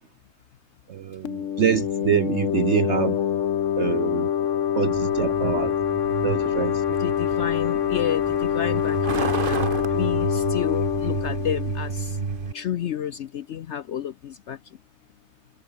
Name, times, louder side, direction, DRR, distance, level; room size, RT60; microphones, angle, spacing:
voice 1, 0.9-3.2 3.8-4.3 4.7-5.7 6.2-7.0, right 9 dB, 70° right, 0.6 m, -25 dB
sound 1, 1.2-12.7, left 9 dB, 55° left, 1.1 m, -25 dB
Truck, 4.9-12.5, right 5 dB, 35° right, 1.3 m, -31 dB
voice 2, 7.0-12.2 12.5-14.6, left 9 dB, 80° left, 0.6 m, -31 dB
omnidirectional pair, 1.9 m